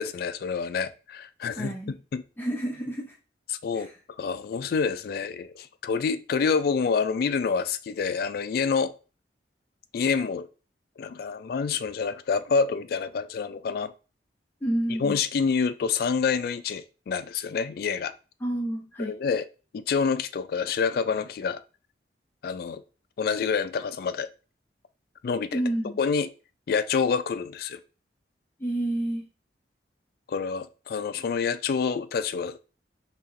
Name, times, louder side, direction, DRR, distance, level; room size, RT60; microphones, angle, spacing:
voice 1, 0.0-1.7 2.1-2.2 3.5-3.9 4.2-8.9 9.9-10.5 11.0-13.9 14.9-18.1 19.0-19.5 19.7-21.6 22.4-22.8 23.2-24.3 25.2-25.6 26.0-26.3 26.7-27.8 30.3-32.6, left 5 dB, 55° left, 0.3 m, -27 dB
voice 2, 1.5-2.0 2.4-3.1 3.7-3.9 14.6-15.2 18.4-19.1 25.5-26.0 28.6-29.2, right 1 dB, 10° left, 0.6 m, -29 dB
4.2 x 2.8 x 2.5 m
head